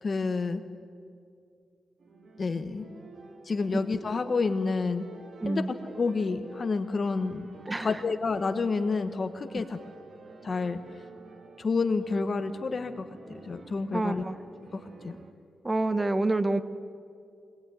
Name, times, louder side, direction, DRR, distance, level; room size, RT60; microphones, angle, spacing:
voice 1, 0.0-0.6 2.4-2.9 3.5-5.1 5.4-5.7 5.9-7.5 7.8-9.8 10.4-10.8 11.6-14.2 14.7-15.2, left 4 dB, 35° left, 9 dB, 1.3 m, -29 dB
sound 1, 2.0-15.3, right 4 dB, 50° right, 1.9 m, -50 dB
voice 2, 13.9-14.4 15.6-16.6, right 2 dB, 20° right, 12 dB, 1.0 m, -27 dB
23.0 x 20.0 x 9.5 m, 2.4 s
wide cardioid pair, 135°, 0 cm